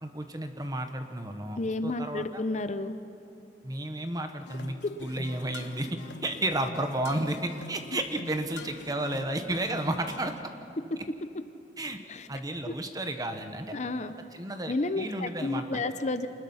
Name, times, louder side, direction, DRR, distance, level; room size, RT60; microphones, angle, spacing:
voice 1, 0.0-2.4 3.6-10.3 11.8-12.0 12.3-13.8 14.3-15.8, right 1 dB, 20° right, 7 dB, 1.2 m, -32 dB
voice 2, 1.6-3.0 4.8-4.9 12.1-12.3 12.7-12.8 13.7-14.1 14.7-16.3, left 2 dB, 40° left, 10 dB, 0.7 m, -31 dB
sound 1, 4.5-10.4, left 3 dB, 75° left, 1.2 m, -45 dB
26.5 x 20.5 x 5.7 m, 2.8 s
head